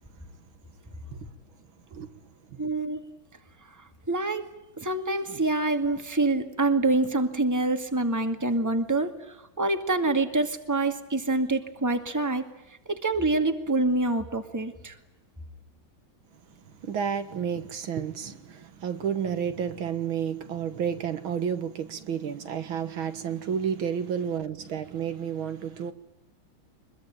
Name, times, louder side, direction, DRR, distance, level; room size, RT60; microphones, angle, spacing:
voice 1, 2.6-3.0 4.1-4.4 4.8-12.4 12.9-15.0, right 2 dB, 10° right, 2.0 m, -26 dB
voice 2, 16.7-25.9, right 8 dB, 70° right, 2.3 m, -31 dB
24.5 x 22.0 x 9.0 m
omnidirectional pair, 2.3 m